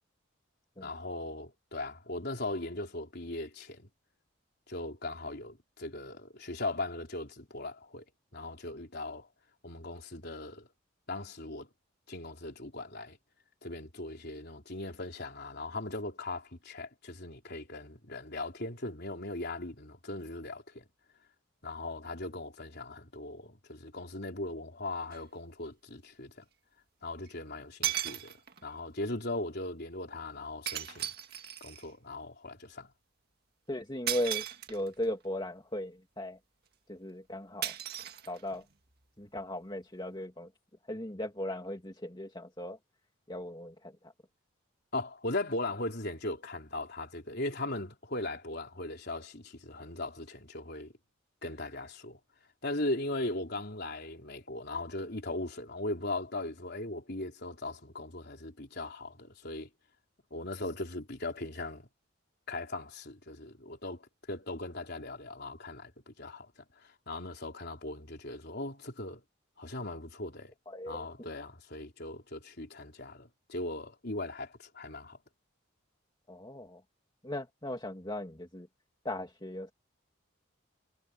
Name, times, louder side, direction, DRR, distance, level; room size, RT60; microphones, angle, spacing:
voice 1, 0.8-3.9 4.7-8.0 8.3-9.3 9.6-10.7 11.1-11.7 12.1-13.2 13.6-20.8 21.6-26.4 27.0-28.3 28.6-31.1 31.6-32.9 44.9-50.9 51.4-52.2 52.6-59.7 60.3-61.9 62.5-66.5 66.8-69.2 69.6-70.5 70.9-75.2, left 2 dB, 50° left, 4.1 m, -39 dB
sound 1, 25.1-25.2 27.3-27.4 27.8-28.7 30.7-31.9 34.1-35.1 37.6-38.7, right 11 dB, 50° right, 1.9 m, -36 dB
voice 2, 33.7-36.4 36.9-37.7 38.3-38.6 39.2-40.5 40.9-42.8 43.3-43.9 70.7-71.1 76.3-76.8 77.2-78.7 79.0-79.7, left 1 dB, 20° left, 2.6 m, -37 dB
head